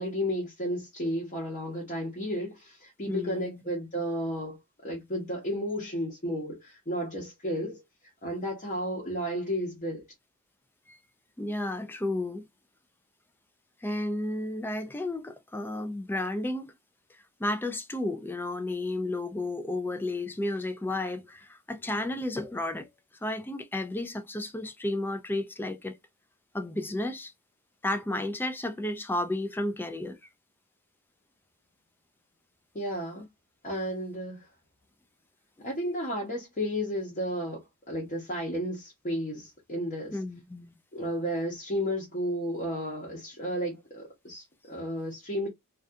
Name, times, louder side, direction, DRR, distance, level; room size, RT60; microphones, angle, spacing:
voice 1, 0.0-7.8 8.2-10.1 32.7-33.2 33.6-34.5 35.6-40.2 40.9-45.5, equal, 35° left, 0.8 m, -33 dB
voice 2, 3.1-3.6 10.9-11.0 11.4-12.4 13.8-16.7 17.4-22.9 23.2-26.0 26.5-27.3 27.8-30.2 40.1-40.8, left 1 dB, 10° left, 0.3 m, -32 dB
2.3 x 2.3 x 2.5 m
head